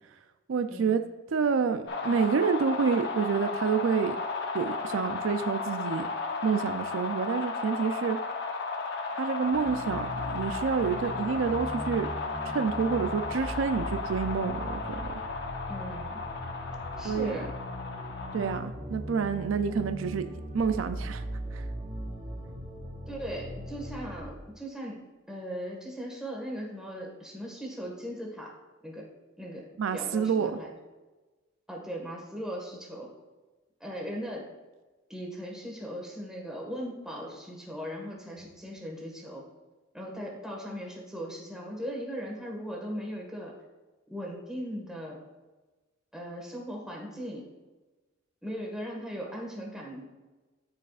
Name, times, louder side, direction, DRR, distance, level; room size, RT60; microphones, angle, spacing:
voice 1, 0.5-1.0 1.3-4.2 4.5-6.1 6.4-8.2 9.2-12.1 12.4-15.0 17.0-17.4 18.3-20.3 20.5-21.2 21.5-21.6 29.8-30.6, right 6 dB, 75° right, 9 dB, 0.4 m, -28 dB
sound 1, 1.9-18.6, left 4 dB, 60° left, 0.8 m, -35 dB
sound 2, 9.4-24.2, equal, 30° right, 1.6 m, -39 dB
voice 2, 15.7-16.2 17.0-17.5 23.1-25.0 25.3-28.5 28.8-29.1 29.4-29.7 29.9-30.7 31.7-33.1 33.8-34.5 35.1-39.5 39.9-43.5 44.1-45.2 46.1-47.5 48.4-50.0, equal, 5° right, -1 dB, 1.6 m, -38 dB
13.0 x 4.9 x 2.4 m, 1.2 s
head